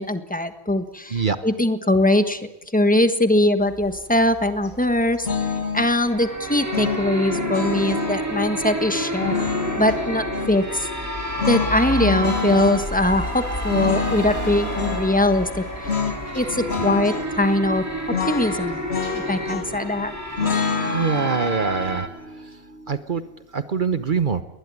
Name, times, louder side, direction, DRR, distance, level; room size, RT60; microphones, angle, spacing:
voice 1, 0.0-2.4 2.7-5.3 5.7-9.3 9.8-10.9 11.5-15.6 16.3-18.8 19.1-20.1, left 1 dB, 10° left, 8 dB, 1.4 m, -21 dB
sound 1, 3.7-20.6, left 1 dB, 50° left, 3.6 m, -36 dB
sound 2, 5.2-5.9 6.7-8.2 9.2-10.6 11.4-12.9 13.7-15.0 15.8-16.2 16.5-17.3 18.1-19.9 20.4-23.4, left 5 dB, 80° left, 1.9 m, -28 dB
sound 3, 5.9-22.1, equal, 15° right, 2.2 m, -30 dB
voice 2, 20.8-22.1 22.9-23.2 23.5-24.4, right 5 dB, 50° right, 11 dB, 1.1 m, -23 dB
21.0 x 19.5 x 9.5 m, 0.94 s
omnidirectional pair, 1.1 m